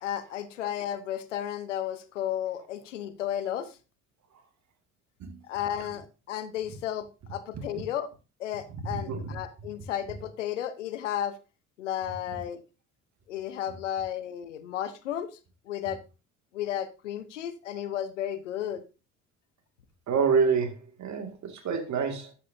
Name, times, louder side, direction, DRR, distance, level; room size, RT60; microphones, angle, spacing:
voice 1, 0.0-3.8 5.5-8.1 8.4-11.4 11.8-12.6 13.3-15.4 15.7-16.0 16.5-18.8, left 10 dB, 90° left, 0.8 m, -33 dB
voice 2, 8.9-9.3 20.1-22.3, right 5 dB, 50° right, 2.1 m, -27 dB
11.5 x 7.1 x 2.7 m
hypercardioid pair, 55°, 36 cm